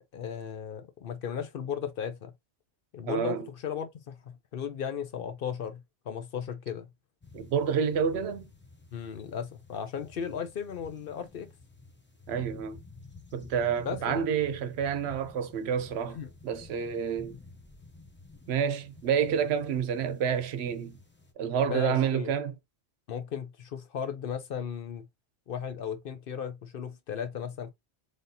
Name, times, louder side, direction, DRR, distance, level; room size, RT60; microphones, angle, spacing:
voice 1, 0.1-2.3 2.9-5.8 6.1-6.9 8.9-11.5 13.8-14.3 16.1-16.3 21.7-22.3 23.1-25.0 25.5-27.7, left 7 dB, 60° left, 0.8 m, -36 dB
voice 2, 3.0-3.5 7.3-8.5 12.3-12.8 13.3-16.2 16.4-17.3 18.5-21.0 21.4-22.5, right 7 dB, 75° right, 0.9 m, -29 dB
sound 1, 7.2-21.3, left 3 dB, 15° left, 0.6 m, -52 dB
3.9 x 3.5 x 2.7 m
omnidirectional pair, 1.1 m